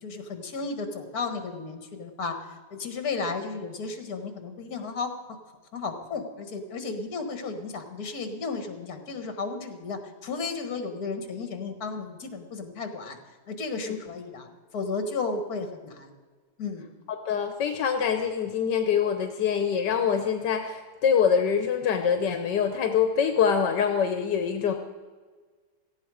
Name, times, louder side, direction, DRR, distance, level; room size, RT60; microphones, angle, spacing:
voice 1, 0.0-5.1 5.7-13.2 13.5-14.5 14.7-16.1 16.6-16.8, left 4 dB, 60° left, 6 dB, 2.0 m, -33 dB
voice 2, 17.1-24.7, left 7 dB, 85° left, 6 dB, 1.5 m, -25 dB
17.0 x 14.0 x 4.9 m, 1.4 s
omnidirectional pair, 1.8 m